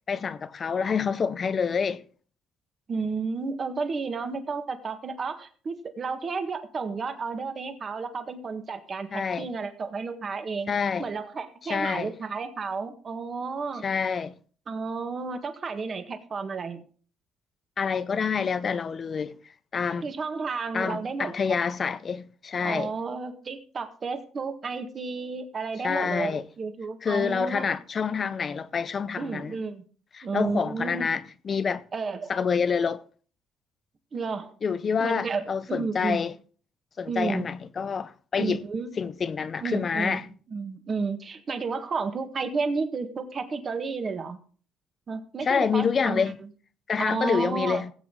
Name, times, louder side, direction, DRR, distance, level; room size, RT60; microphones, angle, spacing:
voice 1, 0.1-2.0 9.1-9.5 10.7-11.1 11.6-12.1 13.8-14.4 17.8-19.4 19.7-20.1 20.7-22.9 25.8-26.5 27.0-29.6 30.1-31.8 32.3-33.0 34.6-36.3 37.0-38.6 39.0-40.3 45.4-46.4 46.9-47.9, left 6 dB, 35° left, 0.6 m, -27 dB
voice 2, 2.9-10.7 11.0-13.8 14.7-16.8 20.0-21.4 22.6-27.8 29.2-29.8 30.2-31.1 31.9-32.3 34.1-34.5 35.0-35.4 35.7-36.2 37.1-37.5 38.4-38.9 39.6-44.4 45.1-46.2 47.0-47.8, right 4 dB, 35° right, 1.5 m, -32 dB
17.5 x 8.0 x 3.8 m
cardioid pair, 115°, 0 cm